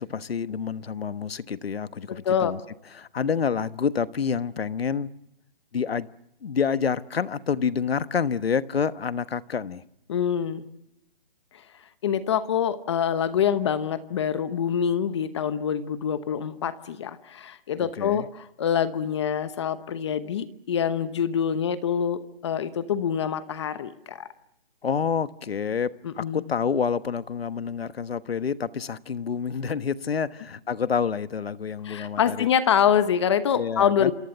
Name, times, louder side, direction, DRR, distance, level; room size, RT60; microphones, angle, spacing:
voice 1, 0.0-2.6 3.0-5.1 5.7-6.1 6.4-9.8 18.0-18.2 24.8-32.5 33.5-34.1, left 6 dB, 90° left, 1.3 m, -28 dB
voice 2, 2.1-2.5 10.1-10.6 12.0-24.3 26.0-26.4 31.8-34.1, left 8 dB, 30° left, 1.0 m, -25 dB
29.5 x 27.5 x 6.8 m
hypercardioid pair, 165°, 29 cm